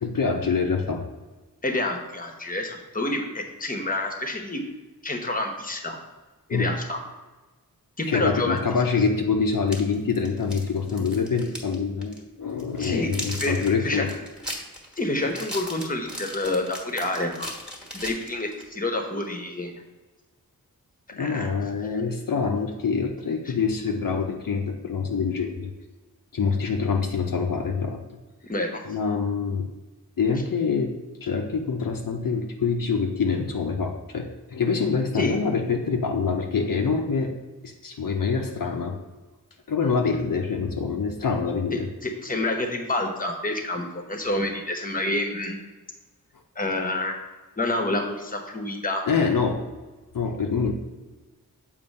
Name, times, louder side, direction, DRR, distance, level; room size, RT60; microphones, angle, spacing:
voice 1, 0.0-1.1 6.5-6.7 8.1-14.1 21.1-25.7 26.3-28.0 28.9-29.6 30.2-31.0 31.2-37.3 37.6-39.0 39.7-41.9 49.1-49.7 50.1-50.7, left 5 dB, 65° left, 2 dB, 0.7 m, -25 dB
voice 2, 1.6-4.6 5.0-6.0 6.5-7.0 8.0-8.6 12.8-13.6 13.8-14.1 15.0-17.5 17.9-19.8 21.2-21.5 23.4-23.5 28.5-28.8 35.1-35.4 41.7-45.6 46.6-47.2 47.6-49.0, left 2 dB, 25° left, 4 dB, 1.0 m, -28 dB
sound 1, 9.5-11.8 12.0-12.2 12.6-18.7, equal, ahead, 1.3 m, -37 dB
6.9 x 2.8 x 5.3 m, 1.2 s
wide cardioid pair, 60°, 35 cm